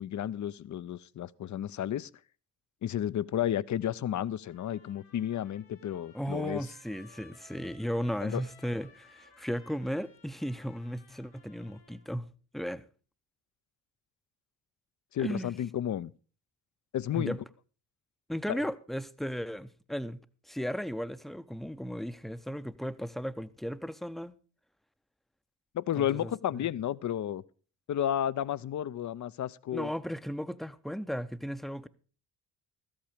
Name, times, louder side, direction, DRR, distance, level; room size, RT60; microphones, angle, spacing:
voice 1, 0.0-2.1 2.8-6.7 8.2-8.4 15.1-16.1 16.9-17.4 18.5-18.6 25.7-27.4 27.9-29.9, left 10 dB, 40° left, 0.5 m, -32 dB
Trumpet, 4.4-12.0, left 4 dB, 80° left, 4.5 m, -59 dB
voice 2, 6.1-12.3 12.5-12.8 15.2-15.6 17.1-17.4 18.3-24.3 26.0-26.3 29.7-31.9, equal, ahead, 0.6 m, -35 dB
13.5 x 8.9 x 5.0 m
hypercardioid pair, 50°, 46 cm